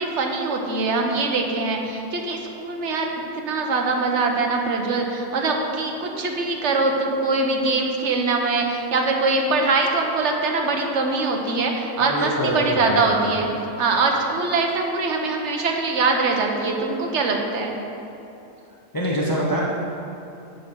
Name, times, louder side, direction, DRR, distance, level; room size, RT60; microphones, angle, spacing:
voice 1, 0.0-13.5 13.8-17.7, right 3 dB, 60° right, 2 dB, 1.2 m, -23 dB
voice 2, 12.0-13.5 18.9-19.6, equal, 20° left, -4 dB, 0.7 m, -25 dB
10.5 x 3.9 x 6.8 m, 2.8 s
omnidirectional pair, 1.4 m